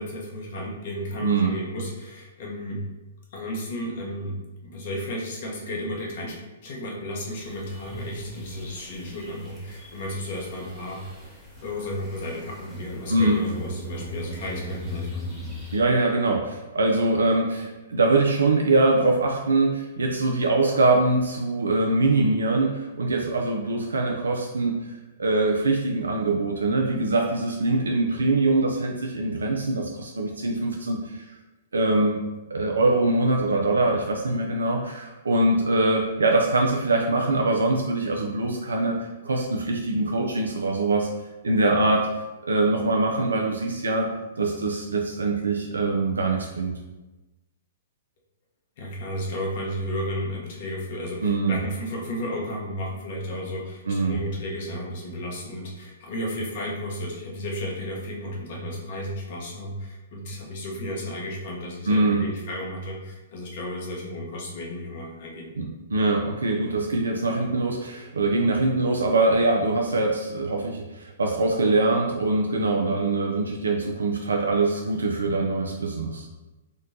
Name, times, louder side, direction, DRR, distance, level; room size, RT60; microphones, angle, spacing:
voice 1, 0.0-2.8 3.3-4.4 4.6-11.0 11.6-15.2 48.8-65.5, left 1 dB, 55° left, -2 dB, 0.9 m, -33 dB
voice 2, 1.2-1.5 13.1-13.4 15.7-24.8 25.2-31.2 31.7-32.2 32.5-41.1 41.4-42.1 42.4-44.1 44.4-46.7 51.2-51.6 53.9-54.1 61.9-62.2 65.6-76.3, right 2 dB, 85° right, 1 dB, 0.3 m, -23 dB
sound 1, 7.3-15.8, left 1 dB, ahead, 1.0 m, -38 dB
3.7 x 2.2 x 2.7 m, 1.1 s
hypercardioid pair, 120°, 0 cm